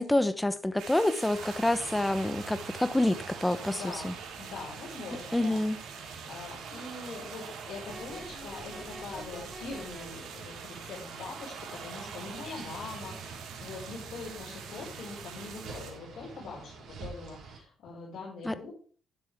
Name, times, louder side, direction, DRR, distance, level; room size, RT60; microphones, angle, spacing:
voice 1, 0.0-3.8 4.0-4.1 5.3-5.8 18.4-18.5, left 1 dB, 10° left, 0.9 m, -27 dB
sound 1, 0.8-15.9, right 7 dB, 80° right, 2.8 m, -46 dB
sound 2, 1.3-17.6, right 5 dB, 65° right, 4.5 m, -45 dB
voice 2, 3.6-5.6 5.9-18.7, left 4 dB, 70° left, 5.6 m, -43 dB
sound 3, 7.9-10.0, equal, 15° right, 5.8 m, -45 dB
11.5 x 10.5 x 3.6 m
cardioid pair, 90°, 0 cm